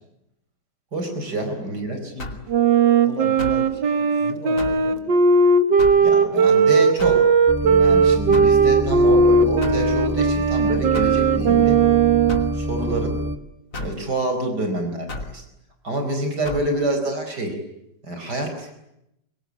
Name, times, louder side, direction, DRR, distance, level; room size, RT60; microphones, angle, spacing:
voice 1, 0.9-2.0 3.2-3.3 6.0-7.2 7.6-11.8 12.5-13.2 13.8-15.4 15.8-17.6 18.0-18.7, right 1 dB, 65° right, 5 dB, 5.2 m, -27 dB
voice 2, 1.5-2.5 3.0-5.0, equal, 20° left, 3 dB, 6.8 m, -38 dB
sound 1, 2.2-2.5 3.4-3.7 4.6-4.9 5.8-6.1 7.0-7.3 8.3-8.6 9.6-9.9 10.9-11.2 12.3-12.5 13.7-14.0 15.1-15.4 16.4-16.7, left 2 dB, 45° left, 3.1 m, -32 dB
Wind instrument woodwind instrument, 2.5-12.5, right 5 dB, 80° right, 2.1 m, -17 dB
sound 2, 7.5-13.4, equal, 15° right, 1.2 m, -27 dB
25.0 x 23.5 x 9.9 m, 0.82 s
omnidirectional pair, 1.9 m